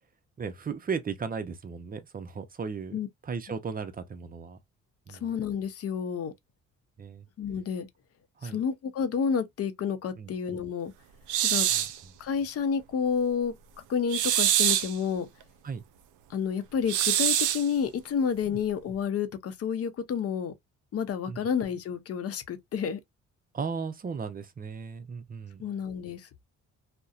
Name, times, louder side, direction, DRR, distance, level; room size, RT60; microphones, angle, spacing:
voice 1, 0.4-3.0 3.2-4.6 5.1-5.2 7.0-7.3 8.4-8.6 10.2-10.3 11.7-11.9 15.6-15.8 18.5-18.6 21.3-21.4 23.5-25.6, right 5 dB, 30° right, 0.6 m, -36 dB
voice 2, 5.1-6.3 7.4-7.9 8.4-10.9 11.4-11.7 12.2-13.5 13.9-15.3 16.3-20.5 20.9-23.0 25.6-26.4, left 7 dB, 50° left, 0.6 m, -30 dB
sound 1, 11.3-12.0 14.1-15.0 16.9-17.7, right 11 dB, 80° right, 0.5 m, -25 dB
2.6 x 2.1 x 2.3 m
cardioid pair, 90°, 30 cm